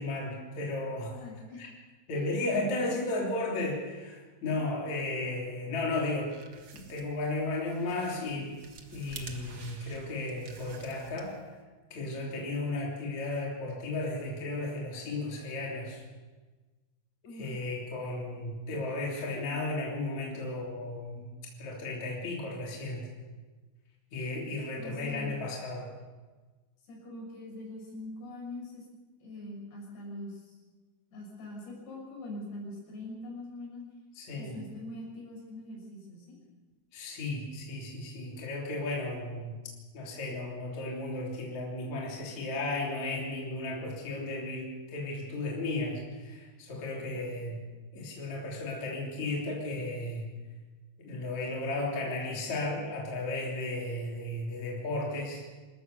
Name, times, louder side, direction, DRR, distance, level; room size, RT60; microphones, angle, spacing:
voice 1, 0.0-1.2 1.6-1.7 2.1-6.3 6.7-8.6 8.9-11.4 11.9-16.0 17.4-21.3 21.6-23.1 24.1-25.9 34.2-34.6 36.9-39.6 39.9-47.6 47.9-50.3 51.0-55.4, left 2 dB, 45° left, -3 dB, 4.2 m, -34 dB
voice 2, 1.1-1.6 2.1-3.0 17.3-17.6 24.8-25.3 26.9-28.8 29.2-30.6 31.1-33.8 34.3-36.4, left 1 dB, 80° left, -2 dB, 8.6 m, -43 dB
sound 1, 6.0-11.6, right 4 dB, 55° right, 1.3 m, -50 dB
28.0 x 13.5 x 6.9 m, 1.3 s
omnidirectional pair, 4.9 m